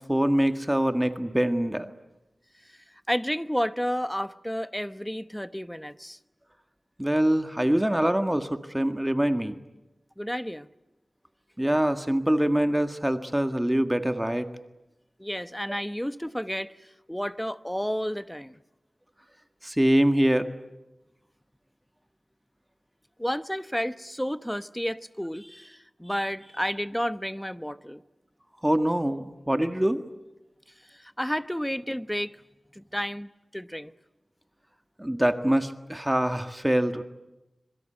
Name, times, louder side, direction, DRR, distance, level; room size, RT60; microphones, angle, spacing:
voice 1, 0.0-1.9 7.0-9.6 11.6-14.5 19.6-20.5 28.6-30.0 35.0-37.0, right 1 dB, 10° right, 7 dB, 1.7 m, -24 dB
voice 2, 3.1-6.2 10.2-10.7 15.2-18.6 23.2-28.0 30.9-32.4 32.7-33.9, equal, 5° left, 12 dB, 1.0 m, -31 dB
26.0 x 23.5 x 9.0 m, 1.0 s
wide cardioid pair, 60°, 0 cm